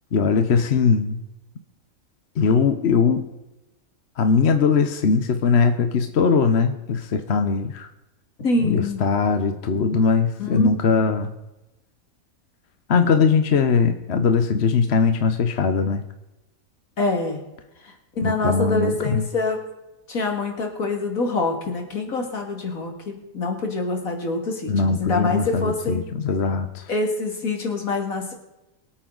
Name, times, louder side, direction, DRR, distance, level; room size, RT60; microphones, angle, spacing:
voice 1, 0.1-1.2 2.4-3.2 4.2-7.9 8.6-11.3 12.9-16.0 18.2-19.3 24.7-26.9, left 5 dB, 50° left, 8 dB, 1.1 m, -20 dB
voice 2, 8.4-9.1 10.4-10.7 17.0-17.4 18.2-19.6 20.1-26.0 26.9-28.3, left 3 dB, 70° left, 2 dB, 2.7 m, -25 dB
23.5 x 8.7 x 3.9 m, 0.97 s
omnidirectional pair, 1.5 m